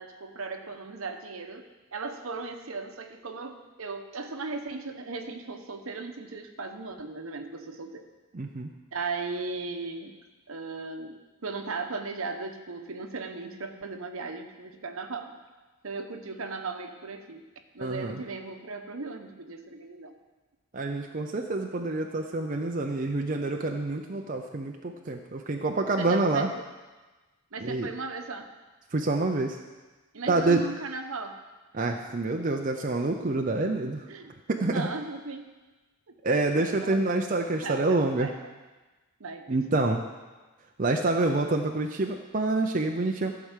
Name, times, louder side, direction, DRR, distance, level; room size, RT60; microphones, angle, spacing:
voice 1, 0.0-8.0 8.9-10.2 10.5-15.4 15.8-17.4 17.7-20.1 26.0-26.6 27.5-28.5 30.1-31.4 34.1-34.3 34.6-35.5 36.1-36.4 36.8-37.0 37.6-38.3 39.2-39.8, right 4 dB, 70° right, 6 dB, 1.0 m, -37 dB
voice 2, 8.3-8.7 17.8-18.2 20.7-26.5 27.6-27.9 28.9-29.6 30.3-30.6 31.7-34.0 34.5-34.9 36.2-38.3 39.5-40.0 40.8-43.3, right 2 dB, 35° right, 3 dB, 0.6 m, -27 dB
14.5 x 4.9 x 7.4 m, 1.2 s
head